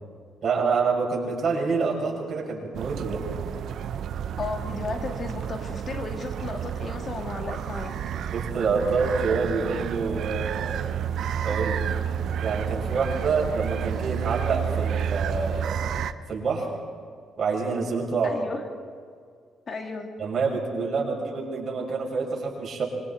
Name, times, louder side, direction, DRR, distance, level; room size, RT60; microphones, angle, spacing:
voice 1, 0.4-3.2 8.3-10.9 11.4-11.8 12.4-15.8 16.3-16.7 17.4-18.3 20.2-22.8, right 4 dB, 50° right, -2 dB, 6.1 m, -27 dB
sound 1, 2.7-16.1, right 8 dB, 70° right, 0.7 m, -30 dB
voice 2, 4.4-7.9 18.2-18.6 19.7-20.1, left 3 dB, 45° left, 4 dB, 2.2 m, -34 dB
25.5 x 23.5 x 4.4 m, 2.1 s
cardioid pair, 90°, 0 cm